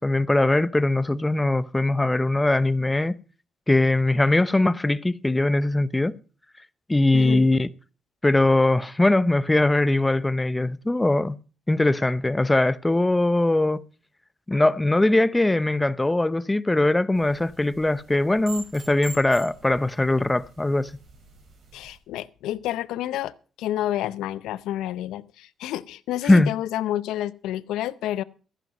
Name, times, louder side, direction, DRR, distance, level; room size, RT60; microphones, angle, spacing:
voice 1, 0.0-3.2 3.7-6.2 6.9-7.7 8.2-11.4 11.7-13.8 14.5-20.9 26.2-26.5, left 2 dB, 15° left, 0.6 m, -21 dB
voice 2, 7.1-7.5 21.7-28.2, left 13 dB, 90° left, 0.6 m, -29 dB
sound 1, 17.1-22.0, right 3 dB, 65° right, 4.7 m, -45 dB
14.0 x 10.5 x 5.2 m
cardioid pair, 90°, 0 cm